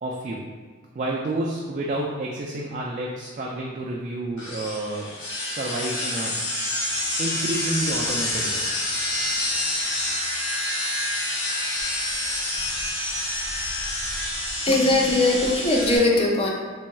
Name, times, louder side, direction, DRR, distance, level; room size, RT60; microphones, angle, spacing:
voice 1, 0.0-0.4 0.9-5.1 5.5-6.3 7.2-8.6, right 2 dB, 40° right, -2 dB, 0.3 m, -29 dB
sound 1, 4.4-16.0, left 1 dB, 75° left, 1.1 m, -28 dB
voice 2, 14.7-16.5, left 2 dB, 30° left, -1 dB, 0.5 m, -20 dB
4.2 x 3.4 x 2.3 m, 1.5 s
head